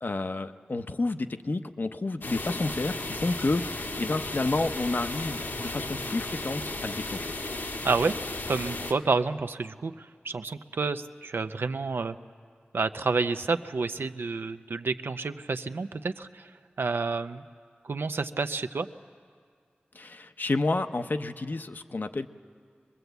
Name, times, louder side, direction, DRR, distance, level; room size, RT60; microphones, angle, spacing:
voice 1, 0.0-7.4 19.9-22.3, left 2 dB, 60° left, 8 dB, 0.7 m, -30 dB
sound 1, 2.2-8.9, left 2 dB, 80° left, 1.5 m, -35 dB
voice 2, 7.8-8.2 8.5-12.2 12.7-16.5 16.8-17.4 17.8-18.9, right 4 dB, 90° right, 9 dB, 0.6 m, -29 dB
24.0 x 20.5 x 8.1 m, 2.1 s
wide cardioid pair, 65°, 4 cm